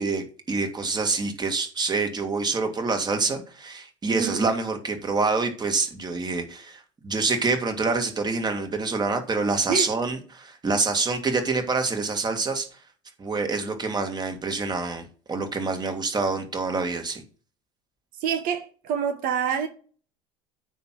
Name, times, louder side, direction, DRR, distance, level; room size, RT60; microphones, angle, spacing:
voice 1, 0.0-12.7 13.2-15.0 15.3-17.2, right 4 dB, 25° right, 1.9 m, -26 dB
voice 2, 4.1-4.4 9.7-9.9 18.2-19.7, right 7 dB, 60° right, 1.2 m, -27 dB
9.2 x 3.5 x 5.9 m
hypercardioid pair, 80°, 16 cm